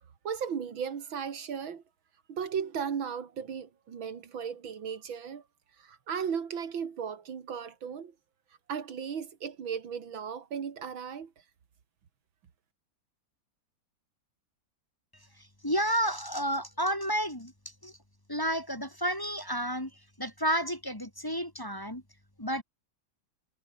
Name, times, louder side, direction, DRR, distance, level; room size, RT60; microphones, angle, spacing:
voice 1, 0.2-1.8 2.3-5.4 5.8-8.1 8.7-11.3, right 7 dB, 85° right, 2.7 m, -36 dB
voice 2, 15.6-17.5 17.8-17.9 18.3-19.9 20.2-22.0 22.4-22.6, equal, 10° left, 2.6 m, -31 dB
omnidirectional pair, 2.1 m